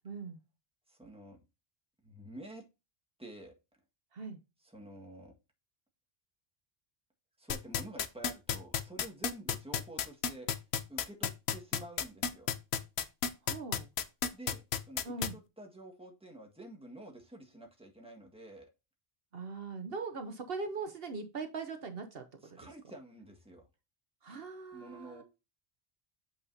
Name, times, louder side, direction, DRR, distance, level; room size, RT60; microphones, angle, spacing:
voice 1, 0.0-0.4 4.1-4.4 13.4-13.9 15.0-15.4 19.3-22.2 24.2-25.2, right 4 dB, 65° right, 6 dB, 1.2 m, -40 dB
voice 2, 0.9-1.4 2.0-2.6 3.2-3.5 4.6-5.3 7.4-10.5 10.9-12.5 14.3-18.7 22.4-23.7 24.7-25.2, right 1 dB, 5° right, 1 dB, 1.6 m, -49 dB
sound 1, 7.5-15.3, left 8 dB, 75° left, 1.0 m, -31 dB
8.4 x 5.8 x 2.7 m, 0.27 s
omnidirectional pair, 1.1 m